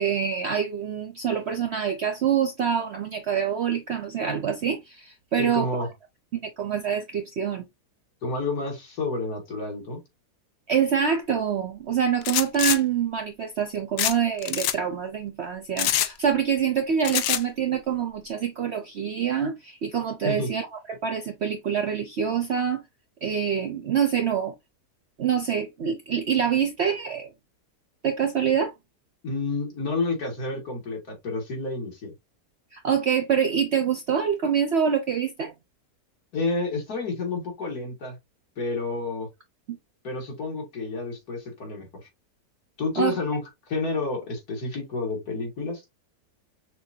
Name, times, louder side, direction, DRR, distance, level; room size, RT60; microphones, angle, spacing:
voice 1, 0.0-5.9 6.3-7.6 10.7-22.8 23.2-24.5 25.2-27.3 28.0-28.7 32.7-35.5 43.0-43.2, right 7 dB, 60° right, 0.7 m, -26 dB
voice 2, 5.4-5.9 8.2-10.0 20.2-20.5 29.2-32.1 36.3-38.2 38.6-39.3 40.0-41.9 42.8-43.4 43.7-45.9, left 3 dB, 65° left, 2.6 m, -30 dB
sound 1, 12.2-12.8 14.0-14.2 14.4-14.8 15.8-16.1 17.1-17.4, left 12 dB, 85° left, 1.2 m, -24 dB
6.1 x 2.7 x 2.7 m
omnidirectional pair, 1.8 m